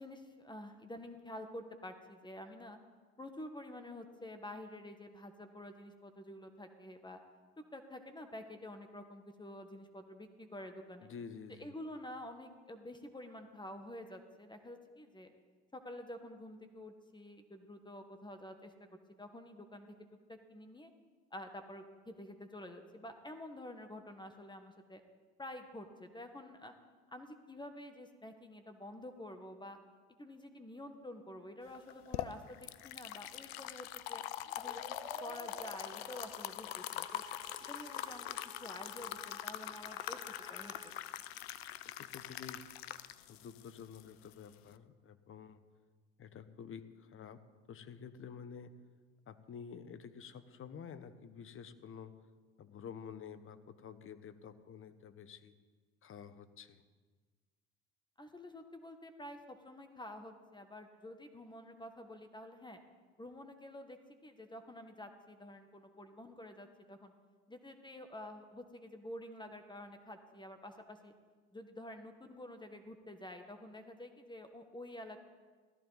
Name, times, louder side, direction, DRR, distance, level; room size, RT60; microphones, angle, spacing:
voice 1, 0.0-2.8 3.2-7.2 7.6-11.1 11.5-15.3 15.7-18.9 19.2-19.9 20.3-20.9 21.3-25.0 25.4-26.7 27.1-29.8 30.2-34.2 34.5-34.8 35.2-37.2 37.6-40.9 58.2-62.8 63.2-67.1 67.5-71.1 71.5-75.2, left 1 dB, 15° left, 7 dB, 1.5 m, -49 dB
voice 2, 11.0-11.7 42.0-42.6 43.3-45.6 46.2-47.4 47.7-48.7 49.3-52.1 52.6-55.5 56.0-56.8, left 7 dB, 45° left, 12 dB, 1.1 m, -50 dB
sound 1, 31.7-44.7, left 13 dB, 85° left, 0.6 m, -43 dB
sound 2, 34.4-40.9, right 3 dB, 15° right, 1.1 m, -55 dB
17.0 x 14.0 x 4.1 m, 1.4 s
hypercardioid pair, 70°, 30 cm